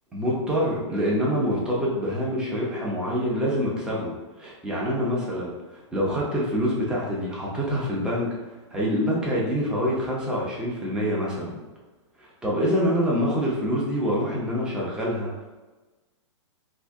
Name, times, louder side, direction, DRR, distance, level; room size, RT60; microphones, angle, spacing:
voice 1, 0.1-4.1 4.4-5.5 5.9-8.3 8.7-11.6 12.2-15.3, equal, 5° right, -5 dB, 0.5 m, -26 dB
2.7 x 2.6 x 3.4 m, 1.2 s
hypercardioid pair, 160°, 16 cm